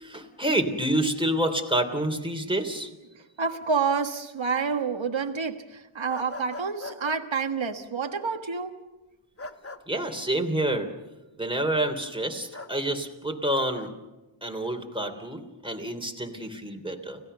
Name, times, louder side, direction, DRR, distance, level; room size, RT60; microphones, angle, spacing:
voice 1, 0.0-2.9 9.9-10.9 11.4-13.9 14.4-17.2, right 1 dB, 10° right, 4 dB, 3.3 m, -28 dB
voice 2, 3.1-8.8, right 5 dB, 65° right, 6 dB, 1.6 m, -28 dB
sound 1, 6.1-7.2 9.4-9.8 12.5-12.7 13.5-13.9, left 2 dB, 30° left, 1.3 m, -40 dB
30.0 x 17.0 x 6.8 m, 1.1 s
wide cardioid pair, 65°, 49 cm